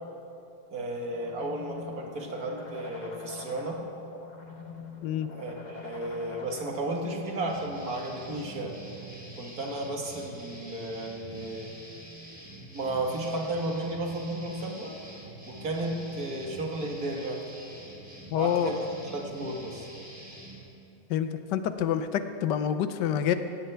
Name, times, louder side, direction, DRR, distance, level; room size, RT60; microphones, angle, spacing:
voice 1, 0.7-3.8 5.3-8.8 9.4-11.7 12.7-14.9 15.5-17.4 18.3-19.9, right 2 dB, 60° right, 1 dB, 2.0 m, -33 dB
sound 1, 1.1-7.1, left 5 dB, 35° left, 0.9 m, -45 dB
sound 2, 7.5-20.6, right 1 dB, 5° right, 3.2 m, -46 dB
voice 2, 18.3-18.8 21.1-23.3, left 9 dB, 90° left, 10 dB, 1.4 m, -27 dB
16.5 x 16.0 x 3.4 m, 2.8 s
omnidirectional pair, 1.8 m